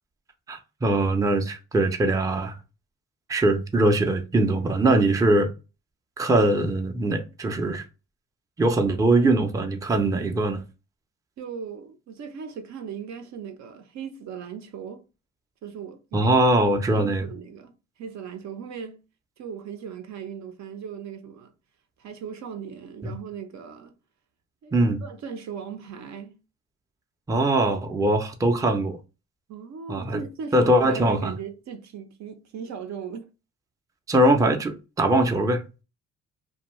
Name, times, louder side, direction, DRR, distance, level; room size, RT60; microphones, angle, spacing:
voice 1, 0.5-2.5 3.3-5.5 6.2-7.8 8.6-10.6 16.1-17.3 23.0-23.1 24.7-25.0 27.3-29.0 29.9-30.2 30.5-31.3 34.1-35.6, right 1 dB, 10° right, 0.4 m, -22 dB
voice 2, 11.4-15.0 15.6-16.3 16.7-17.7 18.0-19.0 19.4-21.5 22.0-23.9 24.6-26.4 29.5-33.3, right 6 dB, 65° right, 0.6 m, -38 dB
2.6 x 2.1 x 3.0 m
cardioid pair, 90°, 30 cm